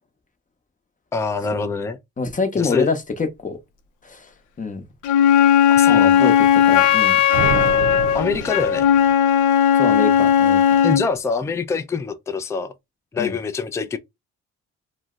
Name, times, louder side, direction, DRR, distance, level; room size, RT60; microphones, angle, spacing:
voice 1, 1.1-2.0 2.6-2.9 5.7-6.3 8.1-8.9 10.8-12.7 13.1-14.0, left 4 dB, 10° left, 0.4 m, -25 dB
voice 2, 2.2-3.6 4.0-4.3 4.6-4.9 5.9-7.2 9.7-10.8 13.2-13.4, left 4 dB, 25° left, 0.8 m, -26 dB
Wind instrument woodwind instrument, 5.0-11.1, left 9 dB, 85° left, 0.6 m, -16 dB
sound 1, 7.3-9.3, right 7 dB, 70° right, 0.5 m, -28 dB
2.7 x 2.1 x 3.6 m
cardioid pair, 90°, 30 cm